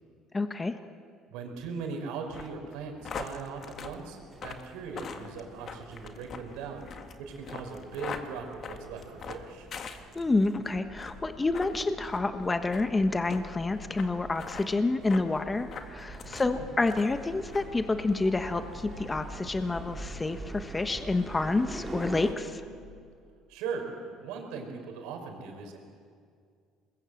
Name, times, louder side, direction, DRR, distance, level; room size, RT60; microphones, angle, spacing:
voice 1, 0.3-0.8 10.1-22.6, left 3 dB, 20° left, 8 dB, 1.2 m, -28 dB
voice 2, 1.3-6.9 7.2-9.7 16.3-16.7 23.5-25.8, right 5 dB, 80° right, 3 dB, 4.8 m, -39 dB
sound 1, 2.3-10.5 10.9-11.2 11.5-11.7 12.1-12.3 12.7-12.9 13.3-13.4 14.0-14.1 14.4-14.7 15.1-15.3 15.7-16.5 16.8-17.2 17.5-17.7, left 6 dB, 45° left, 1.8 m, -41 dB
sound 2, 3.7-22.3, right 2 dB, 20° right, 3.2 m, -46 dB
sound 3, 10.8-23.0, left 5 dB, 85° left, 6.1 m, -50 dB
26.5 x 21.0 x 7.7 m, 2.2 s
supercardioid pair, 95°, 0 cm